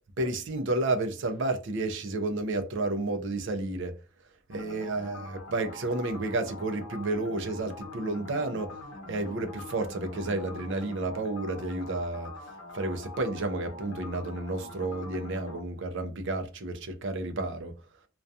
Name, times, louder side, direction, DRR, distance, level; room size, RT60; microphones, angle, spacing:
voice 1, 0.2-3.9 4.5-8.8 9.1-12.3 12.7-17.7, right 2 dB, 55° right, 0.4 m, -31 dB
sound 1, 4.5-15.6, left 2 dB, 90° left, 0.7 m, -44 dB
2.3 x 2.2 x 2.6 m
head